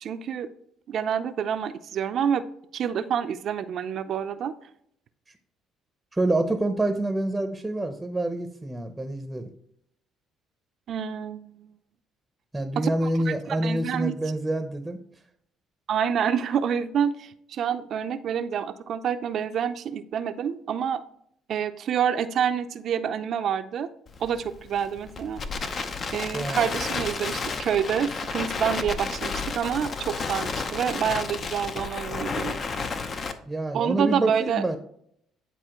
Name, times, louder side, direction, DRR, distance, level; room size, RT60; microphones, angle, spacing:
voice 1, 0.0-0.5 0.9-2.5 2.7-4.5 10.9-11.7 12.8-14.1 15.9-21.0 21.5-23.9 24.2-25.4 26.1-32.6 33.7-34.6, right 8 dB, 60° right, 11 dB, 0.5 m, -27 dB
voice 2, 6.1-9.5 12.5-15.0 26.3-26.7 33.5-34.8, right 1 dB, 10° right, 6 dB, 0.7 m, -27 dB
Crackle, 24.1-33.3, left 4 dB, 45° left, 0.7 m, -32 dB
10.0 x 4.1 x 3.0 m, 0.70 s
cardioid pair, 90°, 0 cm